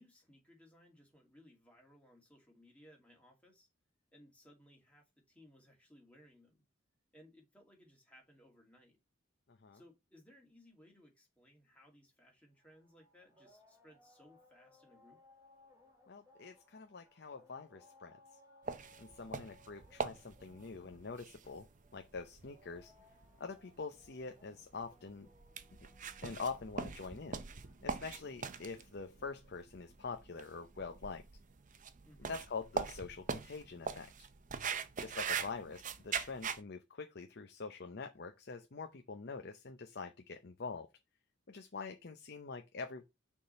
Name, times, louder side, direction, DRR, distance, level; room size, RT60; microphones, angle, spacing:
voice 1, 0.0-3.7 4.1-6.6 7.1-9.0 9.7-15.2 32.0-32.4 35.3-35.7, equal, 5° left, 2.5 m, -63 dB
voice 2, 9.5-9.8 16.1-18.2 19.0-21.7 21.9-22.9 23.4-25.3 25.8-25.9 26.2-27.4 27.8-31.2 32.3-34.3 35.0-40.9 41.5-43.0, left 4 dB, 55° left, 0.7 m, -45 dB
sound 1, 12.6-29.0, left 1 dB, 15° right, 2.0 m, -66 dB
sound 2, 18.7-36.6, right 5 dB, 40° right, 0.6 m, -42 dB
6.5 x 3.7 x 5.7 m
head